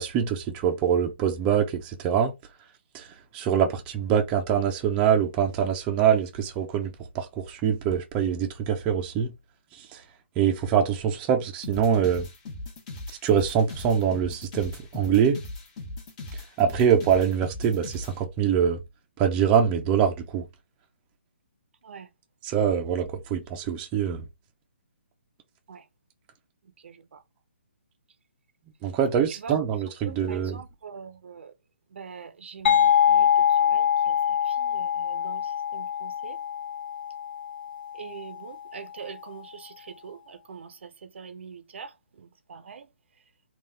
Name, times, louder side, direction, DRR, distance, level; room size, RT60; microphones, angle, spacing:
voice 1, 0.0-2.3 2.9-3.1 3.3-9.3 9.8-10.0 10.4-12.3 13.2-15.4 16.6-18.8 19.2-20.5 22.4-24.2 28.8-30.6, right 8 dB, 20° right, 0.6 m, -24 dB
sound 1, 11.6-18.1, left 2 dB, 35° left, 1.2 m, -38 dB
voice 2, 26.8-27.2 29.4-29.5 30.0-31.5 31.9-36.4 37.9-41.9 42.2-42.9, right 6 dB, 65° right, 0.7 m, -43 dB
sound 2, 32.7-38.1, left 9 dB, 55° left, 0.9 m, -24 dB
3.9 x 2.4 x 3.2 m
hypercardioid pair, 150°, 7 cm